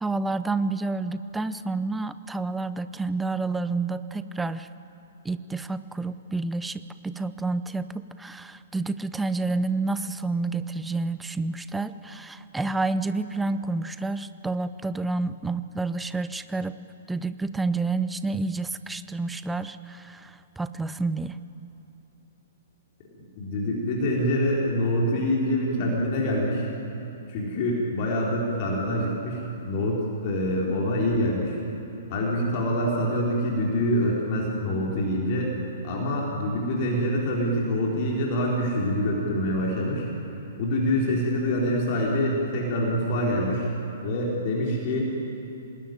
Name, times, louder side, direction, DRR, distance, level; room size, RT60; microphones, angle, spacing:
voice 1, 0.0-4.7 5.2-16.8 17.1-21.4, right 3 dB, 5° right, 13 dB, 0.7 m, -29 dB
voice 2, 23.4-26.7 27.3-31.6 32.1-35.5 35.8-40.1 40.6-43.7 44.0-45.1, equal, 40° left, -3 dB, 4.2 m, -25 dB
25.5 x 20.5 x 9.4 m, 3.0 s
figure-of-eight pair, 115°, 0 cm